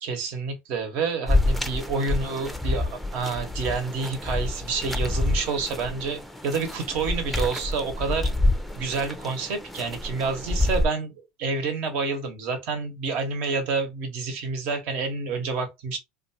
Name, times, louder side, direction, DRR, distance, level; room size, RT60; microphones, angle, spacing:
voice 1, 0.0-8.3 8.8-16.0, right 4 dB, 65° right, 1.1 m, -28 dB
sound 1, 1.3-10.9, left 2 dB, ahead, 0.5 m, -27 dB
2.5 x 2.4 x 2.7 m
supercardioid pair, 95°, 3 cm